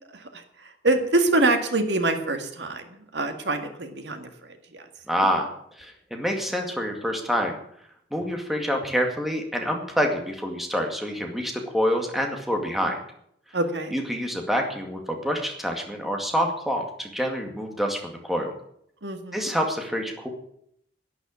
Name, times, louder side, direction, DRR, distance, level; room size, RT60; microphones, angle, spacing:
voice 1, 0.8-4.3 4.7-4.8 13.5-13.9 19.0-19.5, right 2 dB, 80° right, 6 dB, 2.0 m, -25 dB
voice 2, 5.1-5.5 5.8-7.6 8.1-13.0 13.9-18.5 19.3-20.3, equal, ahead, 2 dB, 2.1 m, -27 dB
11.5 x 10.0 x 8.7 m, 0.70 s
head